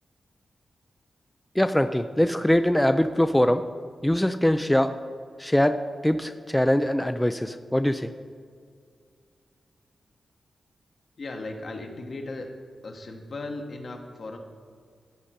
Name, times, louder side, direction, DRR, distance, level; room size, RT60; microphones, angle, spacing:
voice 1, 1.6-3.6 4.0-4.9 5.4-8.1, left 1 dB, 10° left, 9 dB, 0.4 m, -22 dB
voice 2, 11.2-12.5 12.8-14.4, left 2 dB, 60° left, 3 dB, 1.1 m, -36 dB
14.0 x 5.1 x 4.3 m, 2.1 s
cardioid pair, 55°, 0 cm